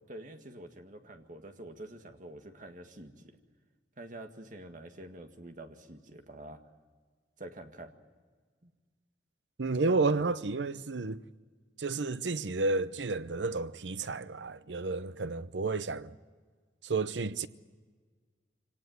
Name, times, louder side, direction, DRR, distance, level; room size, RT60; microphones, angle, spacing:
voice 1, 0.1-3.4 4.0-6.6 7.4-7.9 8.6-8.7 9.9-10.3, right 1 dB, 45° right, 1.9 m, -47 dB
voice 2, 9.6-11.2 11.8-16.2 16.8-17.5, right 3 dB, 90° right, 0.8 m, -31 dB
25.5 x 18.5 x 9.5 m
head